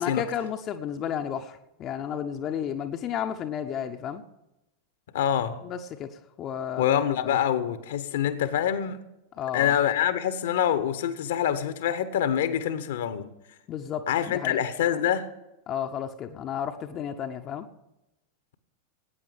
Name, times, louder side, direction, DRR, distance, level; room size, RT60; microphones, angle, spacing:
voice 1, 0.0-4.2 5.6-6.1 6.4-7.0 9.4-9.7 13.7-14.6 15.7-17.7, left 8 dB, 30° left, 0.9 m, -32 dB
voice 2, 5.1-5.6 6.8-9.0 9.5-13.3 14.1-15.3, left 10 dB, 60° left, 1.1 m, -25 dB
18.5 x 9.2 x 5.1 m
figure-of-eight pair, 90°, 0 cm